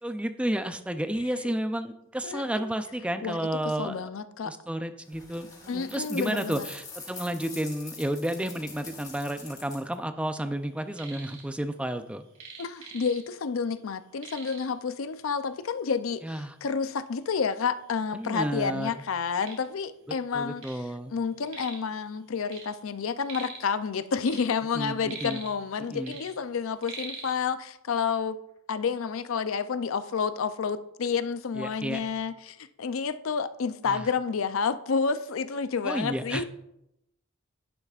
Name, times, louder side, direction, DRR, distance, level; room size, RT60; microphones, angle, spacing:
voice 1, 0.0-4.1 4.4-12.2 16.2-16.6 18.1-19.0 20.3-21.2 24.7-25.4 25.9-26.2 31.5-32.0 33.9-34.1 35.8-36.4, right 1 dB, 5° right, 0.4 m, -32 dB
voice 2, 2.2-2.7 3.2-3.4 3.8-4.5 5.7-6.6 12.6-16.3 16.6-20.6 21.1-28.4 28.7-36.4, left 5 dB, 75° left, 0.5 m, -30 dB
sound 1, 5.1-9.9, left 4 dB, 20° left, 2.6 m, -45 dB
sound 2, 10.7-11.5 11.7-13.5 13.8-13.9 14.2-14.8 15.6-15.7 16.2-16.3 17.1-17.2 17.4-18.3 18.8-20.8 21.1-21.9 22.2-23.7 24.1-25.7 26.0-27.3, right 4 dB, 75° right, 2.9 m, -43 dB
11.0 x 10.0 x 2.4 m
head